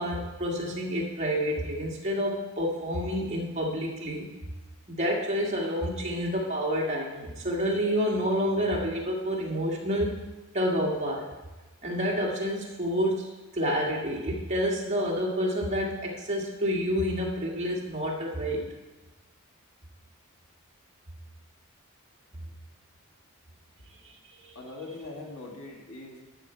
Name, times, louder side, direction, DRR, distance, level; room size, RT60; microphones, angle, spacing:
voice 1, 0.0-4.3 4.9-10.2 10.5-11.3 11.8-18.6 24.3-24.6, equal, 30° right, -3 dB, 1.8 m, -29 dB
voice 2, 24.5-26.2, left 2 dB, 80° left, 0 dB, 1.7 m, -41 dB
12.0 x 6.6 x 4.5 m, 1.2 s
head